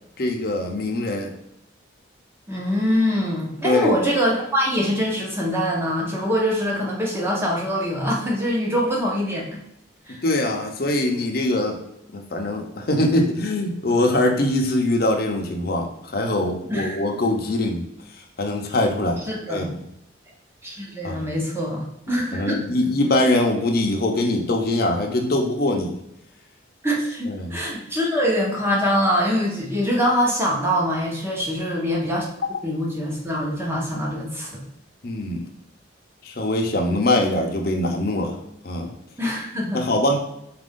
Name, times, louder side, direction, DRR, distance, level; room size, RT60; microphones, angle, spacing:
voice 1, 0.2-1.3 3.6-3.9 10.2-11.8 12.1-17.8 18.4-19.2 19.5-19.7 21.0-21.3 22.3-25.9 27.3-27.6 35.0-35.4 36.2-38.4 38.6-38.9 39.7-40.2, left 1 dB, 50° left, 2 dB, 0.7 m, -22 dB
voice 2, 2.5-9.6 10.1-10.2 16.7-17.0 19.2-19.7 20.6-22.6 26.8-32.3 32.6-34.6 39.2-39.9, equal, 10° right, -3 dB, 0.9 m, -24 dB
4.3 x 2.5 x 3.6 m, 0.81 s
head